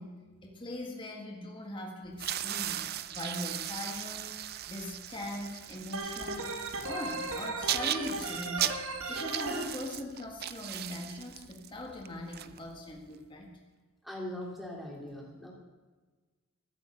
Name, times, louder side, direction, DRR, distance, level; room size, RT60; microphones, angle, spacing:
voice 1, 0.0-4.4 4.7-6.6 6.8-8.8 9.1-13.5, left 1 dB, 20° left, 0 dB, 1.8 m, -41 dB
sound 1, 2.1-13.1, right 11 dB, 45° right, 0.5 m, -38 dB
Organ, 5.9-9.6, right 3 dB, 75° right, 1.9 m, -36 dB
voice 2, 14.0-15.5, left 1 dB, ahead, -2 dB, 2.7 m, -40 dB
14.5 x 7.8 x 8.4 m, 1.3 s
head